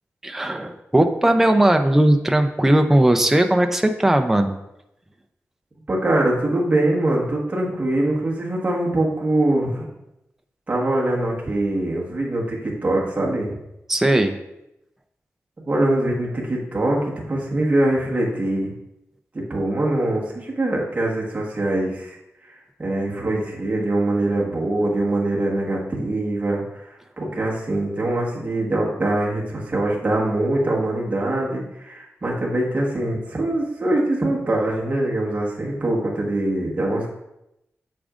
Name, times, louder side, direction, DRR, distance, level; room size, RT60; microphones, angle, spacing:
voice 1, 0.2-4.6 13.9-14.3, right 1 dB, 5° right, 6 dB, 0.4 m, -18 dB
voice 2, 5.9-9.9 10.7-13.6 15.7-18.7 19.3-22.2 22.5-37.1, right 1 dB, 30° right, -3 dB, 1.3 m, -23 dB
8.4 x 6.1 x 2.5 m, 0.87 s
wide cardioid pair, 175°, 5 cm